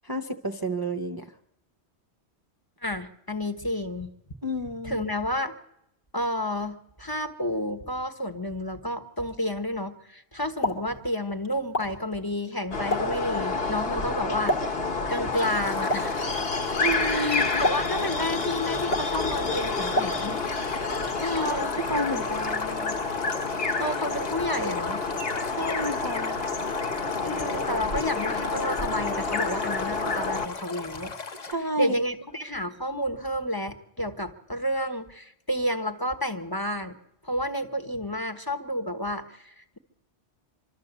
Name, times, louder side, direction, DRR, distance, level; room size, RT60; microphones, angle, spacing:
voice 1, 0.0-1.3 4.4-5.1 16.8-17.6 21.2-22.9 25.4-26.4 31.4-32.0, right 1 dB, 25° right, 4 dB, 0.7 m, -31 dB
voice 2, 2.8-4.1 4.8-5.6 6.1-14.7 15.1-16.3 17.1-20.4 21.2-21.7 23.8-25.1 27.2-31.1 31.8-37.0 37.2-39.8, left 1 dB, 20° left, 7 dB, 1.2 m, -30 dB
Explosion, 10.4-20.6, equal, 80° left, 2.6 m, -35 dB
sound 1, 12.7-30.5, left 4 dB, 60° left, 1.6 m, -29 dB
Stream, 15.3-31.5, left 4 dB, 40° left, 1.0 m, -39 dB
25.0 x 13.0 x 8.1 m, 0.84 s
omnidirectional pair, 1.1 m